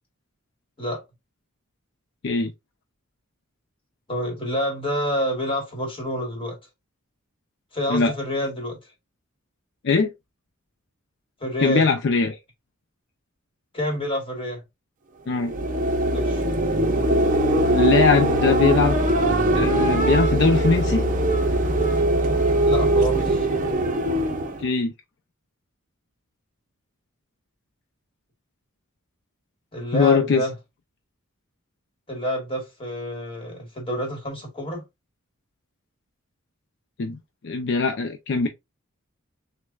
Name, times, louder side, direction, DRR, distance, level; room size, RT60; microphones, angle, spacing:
voice 1, 4.1-6.6 7.7-8.8 11.4-11.9 13.7-14.6 16.1-16.4 22.6-23.5 29.7-30.5 32.1-34.8, equal, 25° left, 1.4 m, -28 dB
voice 2, 11.6-12.4 15.3-15.5 17.7-19.0 19.5-21.0 24.6-24.9 29.9-30.4 37.0-37.2 37.4-38.5, left 4 dB, 55° left, 0.4 m, -21 dB
sound 1, 15.3-24.7, right 1 dB, 40° right, 0.6 m, -21 dB
6.2 x 2.1 x 2.3 m
head